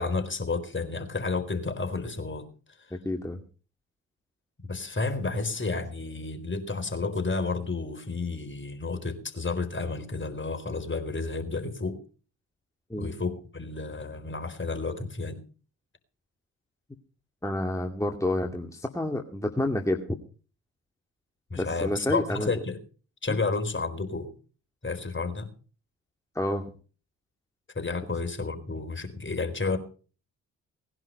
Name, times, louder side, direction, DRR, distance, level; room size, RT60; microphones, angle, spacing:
voice 1, 0.0-2.5 4.7-12.0 13.0-15.4 21.5-22.8 23.2-24.3 24.8-25.5 27.7-29.8, left 3 dB, 30° left, 8 dB, 4.1 m, -31 dB
voice 2, 2.9-3.4 12.9-13.1 17.4-20.2 21.5-22.5 23.3-23.4 26.3-26.7, left 1 dB, 10° left, 3 dB, 2.4 m, -29 dB
19.5 x 11.0 x 5.5 m, 0.39 s
hypercardioid pair, 45°, 38 cm